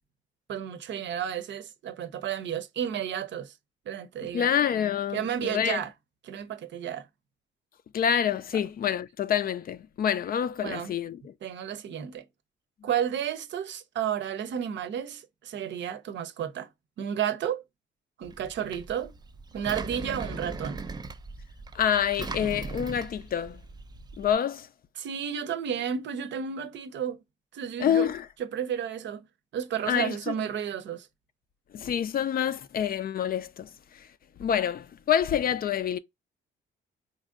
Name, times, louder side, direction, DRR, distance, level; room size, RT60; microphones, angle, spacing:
voice 1, 0.5-3.5 3.9-4.5 5.1-5.9 6.2-7.1 10.6-10.9 11.4-12.3 12.8-16.7 17.0-17.6 18.2-19.1 19.5-20.8 25.0-27.2 27.5-28.1 28.4-29.3 29.5-31.1, right 9 dB, 65° right, 0.6 m, -32 dB
voice 2, 4.3-5.8 7.9-11.3 21.7-23.6 24.2-24.7 27.8-28.3 29.9-30.3 31.7-34.1 34.4-36.0, left 9 dB, 50° left, 0.4 m, -27 dB
Engine, 18.2-24.3, right 3 dB, 20° right, 0.4 m, -39 dB
4.1 x 2.6 x 2.4 m
cardioid pair, 90°, 20 cm